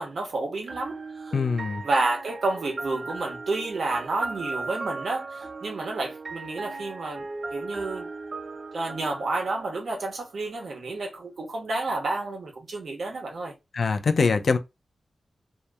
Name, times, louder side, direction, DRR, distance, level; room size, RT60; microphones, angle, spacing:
voice 1, 0.0-1.4 1.8-8.1 8.7-13.5, right 2 dB, 65° right, 0.9 m, -30 dB
sound 1, 0.7-10.5, right 3 dB, 45° right, 0.4 m, -37 dB
voice 2, 1.3-1.8 13.7-14.6, left 4 dB, 60° left, 0.4 m, -23 dB
2.7 x 2.1 x 2.3 m
wide cardioid pair, 110°, 0 cm